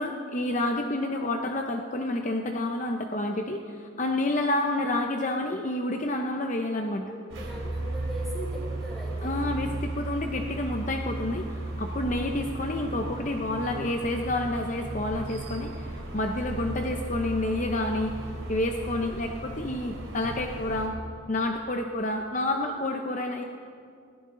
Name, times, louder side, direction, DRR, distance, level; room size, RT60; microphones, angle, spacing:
voice 1, 0.0-7.1 9.2-18.1 18.5-20.9 21.3-23.4, left 1 dB, 35° left, 3 dB, 0.7 m, -29 dB
voice 2, 7.0-9.4 22.6-22.7, equal, ahead, -6 dB, 4.5 m, -40 dB
sound 1, 7.3-20.9, right 2 dB, 70° right, 2.9 m, -35 dB
20.0 x 15.5 x 3.8 m, 2.4 s
head